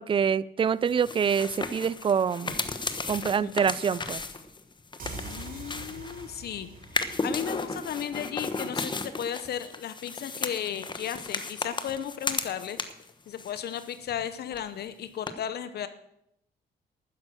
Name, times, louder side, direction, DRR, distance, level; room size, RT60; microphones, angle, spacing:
voice 1, 0.0-2.6 3.1-4.2, right 7 dB, 30° right, 21 dB, 0.4 m, -26 dB
sound 1, 0.9-6.4 6.8-13.1 13.4-14.3 14.5-14.6 15.3-15.4, left 3 dB, 25° left, 1.1 m, -35 dB
voice 2, 5.0-6.7 7.2-12.8 13.3-15.9, left 9 dB, 70° left, 12 dB, 0.8 m, -35 dB
sound 2, 5.0-8.5, right 3 dB, 55° right, 3.1 m, -44 dB
13.0 x 9.6 x 6.3 m, 0.79 s
cardioid pair, 100°, 17 cm